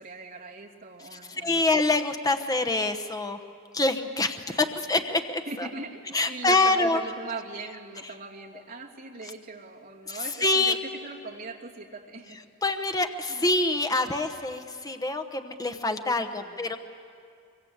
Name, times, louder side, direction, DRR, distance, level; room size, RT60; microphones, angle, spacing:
voice 1, 0.0-1.7 4.5-5.0 5.5-12.4 13.3-13.5 16.2-16.6, right 3 dB, 50° right, -2 dB, 2.7 m, -40 dB
voice 2, 1.3-3.4 3.7-5.7 6.1-7.0 10.1-10.8 12.6-16.8, left 2 dB, 20° left, 7 dB, 1.1 m, -26 dB
24.5 x 24.0 x 8.1 m, 2.3 s
head